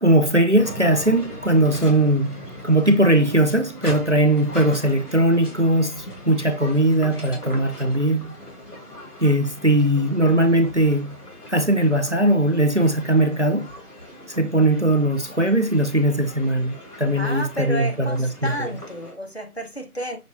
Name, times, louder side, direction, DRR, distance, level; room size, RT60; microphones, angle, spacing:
voice 1, 0.0-8.4 9.2-11.1 11.5-13.7 14.4-18.7, right 1 dB, 50° right, 0.5 m, -20 dB
sound 1, 0.6-19.1, left 1 dB, 80° left, 2.1 m, -39 dB
voice 2, 17.2-20.2, right 1 dB, 45° left, 0.8 m, -31 dB
5.8 x 2.5 x 2.8 m
figure-of-eight pair, 175°, 46 cm